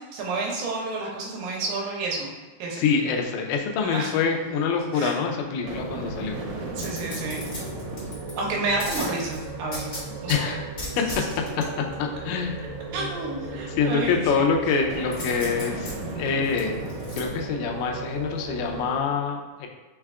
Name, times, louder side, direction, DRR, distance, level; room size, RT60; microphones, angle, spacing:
voice 1, 0.1-2.3 2.6-2.8 3.8-4.1 4.9-5.1 6.6-7.5 8.4-10.6 12.9-14.5, right 3 dB, 90° right, -2 dB, 2.6 m, -30 dB
voice 2, 2.7-6.3 10.3-10.5 11.0-11.1 12.0-12.6 13.8-16.9 17.2-19.7, left 5 dB, 80° left, 2 dB, 2.0 m, -25 dB
sound 1, 5.6-19.0, right 3 dB, 70° right, 1.9 m, -35 dB
sound 2, 6.8-8.3 8.8-10.4 10.8-11.7 15.1-17.2 17.7-17.8, left 2 dB, 45° left, 1.1 m, -37 dB
5.5 x 2.3 x 3.5 m, 1.3 s
omnidirectional pair, 3.9 m